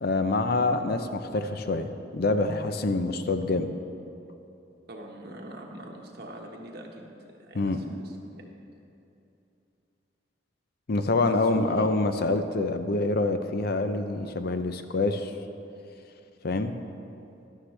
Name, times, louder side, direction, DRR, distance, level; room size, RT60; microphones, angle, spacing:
voice 1, 0.0-3.7 7.5-7.8 10.9-15.3 16.4-16.7, left 2 dB, 55° left, 8 dB, 0.6 m, -26 dB
voice 2, 4.9-8.5 11.2-11.9, right 1 dB, 55° right, 0 dB, 1.3 m, -42 dB
13.0 x 11.5 x 3.3 m, 2.8 s
head